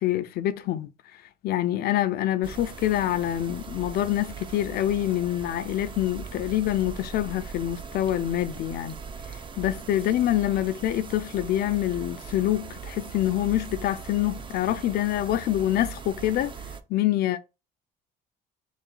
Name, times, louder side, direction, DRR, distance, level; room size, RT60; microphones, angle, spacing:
voice 1, 0.0-0.9 1.4-9.0 9.6-16.5 16.9-17.4, left 13 dB, 65° left, 0.5 m, -26 dB
sound 1, 2.4-16.8, right 5 dB, 30° right, 0.5 m, -40 dB
4.0 x 2.4 x 3.7 m
cardioid pair, 110°, 17 cm